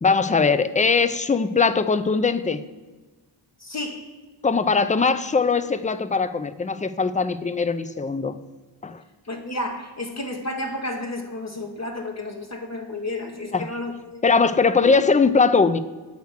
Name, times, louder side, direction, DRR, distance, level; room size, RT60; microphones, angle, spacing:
voice 1, 0.0-2.6 4.4-8.4 8.8-9.0 13.5-13.7 14.2-15.8, left 4 dB, 20° left, 0.4 m, -20 dB
voice 2, 3.6-4.1 9.2-14.2 14.8-15.0, left 1 dB, 35° left, 1.1 m, -32 dB
7.9 x 3.4 x 6.4 m
cardioid pair, 50°, 45 cm